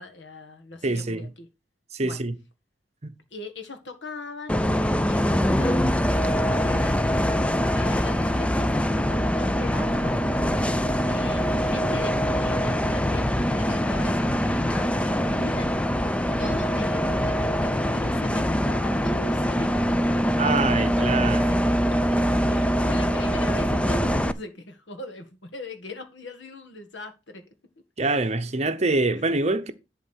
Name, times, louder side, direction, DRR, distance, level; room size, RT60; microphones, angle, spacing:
voice 1, 0.0-1.5 2.0-2.2 3.3-8.7 9.0-10.2 11.0-15.7 16.4-19.8 20.1-20.2 20.6-22.2 22.4-27.4 28.0-28.4 29.3-29.4, left 2 dB, 85° left, 1.8 m, -40 dB
voice 2, 0.8-1.3 1.9-2.4 3.0-3.1 20.4-21.5 28.0-29.7, right 3 dB, 35° right, 0.9 m, -25 dB
Bus, 4.5-24.3, equal, 5° left, 0.4 m, -23 dB
11.0 x 3.9 x 6.4 m
head